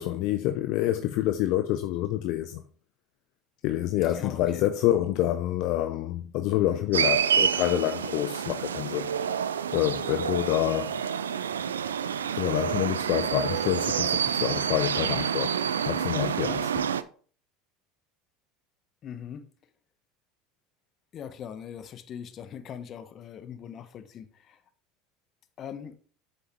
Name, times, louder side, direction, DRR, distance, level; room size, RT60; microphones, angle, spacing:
voice 1, 0.0-2.6 3.6-9.1 9.7-11.5 12.3-15.5 15.9-16.9, left 13 dB, 60° left, 0.5 m, -27 dB
voice 2, 4.0-4.6 19.0-19.5 21.1-24.6 25.6-26.0, left 8 dB, 45° left, 0.9 m, -41 dB
sound 1, 6.9-17.0, right 8 dB, 85° right, 0.4 m, -28 dB
7.3 x 6.9 x 3.0 m
hypercardioid pair, 75°, 0 cm